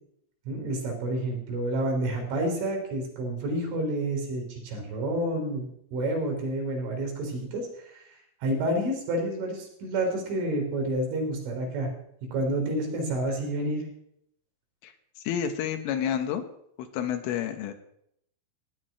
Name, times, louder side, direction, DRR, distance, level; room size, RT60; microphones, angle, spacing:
voice 1, 0.5-8.1 8.4-11.9 12.3-13.8, right 1 dB, 70° right, 2 dB, 5.7 m, -29 dB
voice 2, 15.3-16.4 16.8-17.7, left 9 dB, 80° left, 7 dB, 3.5 m, -29 dB
16.5 x 6.1 x 9.9 m, 0.73 s
omnidirectional pair, 5.9 m